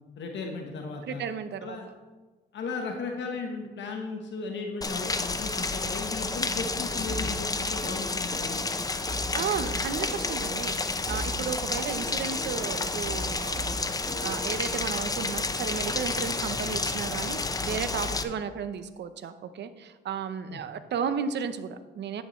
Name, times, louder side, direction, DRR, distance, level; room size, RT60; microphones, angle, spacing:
voice 1, 0.2-1.2 1.6-1.9 2.5-8.6 18.1-18.2 20.5-20.6, left 4 dB, 65° left, 2 dB, 1.2 m, -36 dB
voice 2, 1.1-1.8 9.3-22.2, right 7 dB, 60° right, 11 dB, 0.8 m, -34 dB
Rain, 4.8-18.2, left 3 dB, 20° left, 0.7 m, -30 dB
sound 1, 7.1-10.7 11.1-14.7, equal, 10° right, 2.6 m, -39 dB
10.5 x 9.3 x 3.2 m, 1.2 s
cardioid pair, 90°, 20 cm